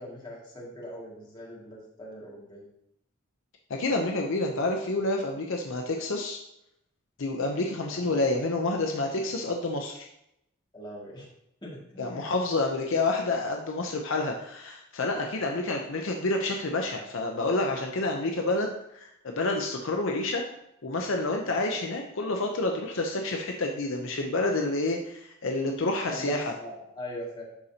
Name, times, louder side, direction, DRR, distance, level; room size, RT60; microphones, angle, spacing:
voice 1, 0.0-2.6 7.9-8.2 10.7-11.3 11.6-12.2 26.1-27.4, left 1 dB, 20° left, -5 dB, 2.1 m, -40 dB
voice 2, 3.7-6.4 7.2-10.1 12.0-20.4 20.8-26.5, left 2 dB, 65° left, 2 dB, 0.7 m, -29 dB
11.5 x 4.2 x 2.8 m, 0.80 s
head